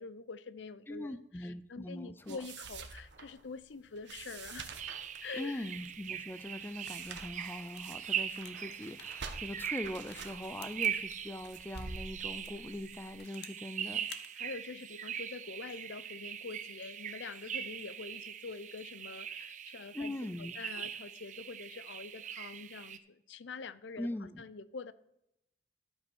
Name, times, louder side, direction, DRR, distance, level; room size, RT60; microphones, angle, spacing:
voice 1, 0.0-4.7 5.2-5.7 14.3-20.1 20.6-24.9, left 4 dB, 90° left, 0.6 m, -45 dB
voice 2, 0.9-2.4 5.4-14.1 19.9-20.5 24.0-24.4, left 1 dB, 10° left, 0.4 m, -41 dB
sound 1, 2.2-13.1, right 4 dB, 80° right, 1.2 m, -48 dB
sound 2, 4.8-23.0, right 9 dB, 40° right, 0.6 m, -41 dB
sound 3, 7.7-12.0 12.4-13.7 14.0-14.3, left 8 dB, 70° left, 0.9 m, -53 dB
12.5 x 5.4 x 6.2 m
head